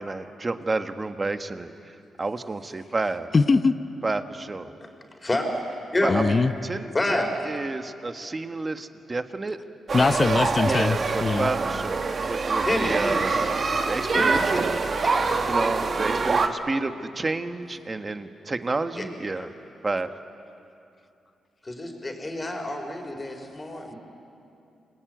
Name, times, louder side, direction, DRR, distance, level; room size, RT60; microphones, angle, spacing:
voice 1, 0.0-3.3 4.0-4.7 6.0-9.6 10.6-13.3 13.9-14.7 15.5-19.5 19.8-20.1, right 3 dB, 30° right, 9 dB, 1.4 m, -30 dB
voice 2, 3.3-3.7 6.1-6.5 9.9-11.5, left 4 dB, 40° left, 12 dB, 0.9 m, -21 dB
voice 3, 6.9-7.3 12.6-13.4 14.1-14.4 19.0-19.1 19.4-19.5 21.6-24.0, left 2 dB, 25° left, 3 dB, 4.9 m, -28 dB
sound 1, 9.9-16.5, right 4 dB, 50° right, 1.7 m, -25 dB
27.5 x 20.5 x 9.3 m, 2.7 s
cardioid pair, 65°, 0 cm